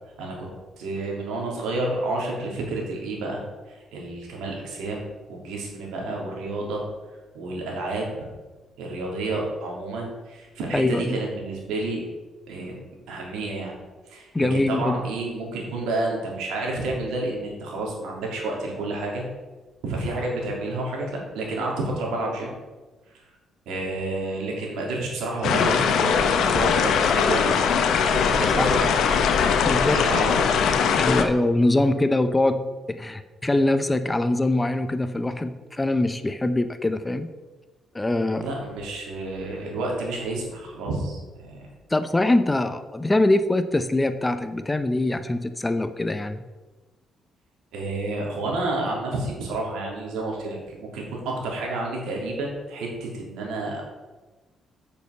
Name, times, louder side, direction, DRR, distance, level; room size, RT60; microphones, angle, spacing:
voice 1, 0.8-3.4 3.7-5.0 5.3-6.8 7.3-8.1 8.8-12.0 12.5-12.8 13.1-13.7 14.1-19.2 19.8-22.5 23.6-27.4 28.1-29.1 29.9-30.4 38.3-41.2 41.4-41.6 47.7-53.9, right 2 dB, 90° right, -1 dB, 3.3 m, -30 dB
voice 2, 10.7-11.2 14.3-15.1 28.5-28.7 29.6-30.0 31.1-37.3 37.9-38.5 41.9-46.4, left 2 dB, 15° left, 11 dB, 0.7 m, -23 dB
sound 1, 25.4-31.2, left 6 dB, 75° left, 1.0 m, -21 dB
8.2 x 6.8 x 6.7 m, 1.2 s
cardioid pair, 90°, 0 cm